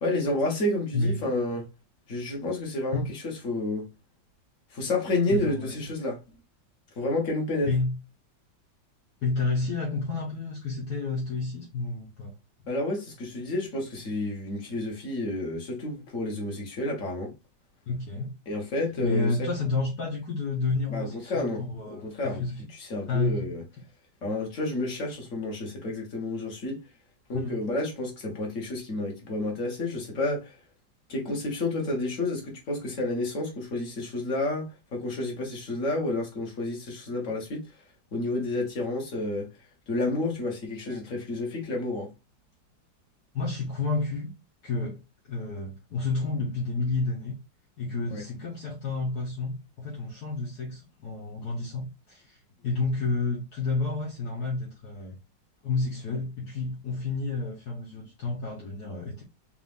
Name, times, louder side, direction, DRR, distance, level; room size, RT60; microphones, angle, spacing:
voice 1, 0.0-1.7 2.1-3.9 4.7-6.2 7.0-7.7 12.7-17.3 18.5-19.5 20.9-21.6 21.9-22.4 22.8-23.6 24.2-26.8 27.3-30.6 31.1-37.7 38.1-39.5 39.9-42.1 48.1-48.2, left 2 dB, 45° left, 1.8 m, -30 dB
voice 2, 0.9-1.3 2.9-3.1 5.3-5.7 7.6-8.0 9.2-12.3 17.9-18.3 19.0-22.6 23.1-23.5 27.3-27.6 40.8-41.0 43.3-44.3 44.6-45.0 45.3-47.3 47.8-55.2 55.6-59.2, left 3 dB, 60° left, 1.6 m, -30 dB
4.6 x 2.6 x 3.5 m
omnidirectional pair, 2.0 m